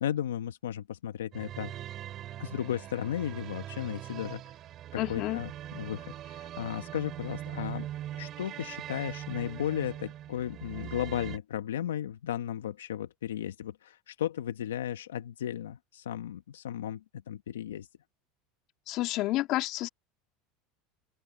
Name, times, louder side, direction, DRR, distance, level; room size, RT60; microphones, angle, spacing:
voice 1, 0.0-1.7 2.4-4.5 4.9-7.9 8.1-17.9, left 10 dB, 90° left, 1.0 m, -35 dB
sound 1, 1.3-11.4, right 12 dB, 45° right, 5.4 m, -41 dB
voice 2, 5.0-5.4 18.9-19.9, left 17 dB, 55° left, 2.3 m, -30 dB
open air
hypercardioid pair, 95°, 0 cm